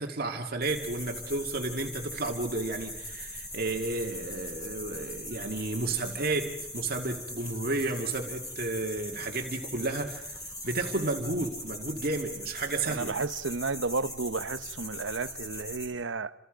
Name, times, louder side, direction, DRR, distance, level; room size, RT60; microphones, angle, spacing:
voice 1, 0.0-10.4 10.6-13.1, right 2 dB, 50° right, 2.1 m, -32 dB
sound 1, 0.6-15.9, left 1 dB, 20° left, 5.9 m, -40 dB
voice 2, 12.8-16.3, right 3 dB, 75° right, 0.9 m, -32 dB
30.0 x 27.0 x 5.2 m
head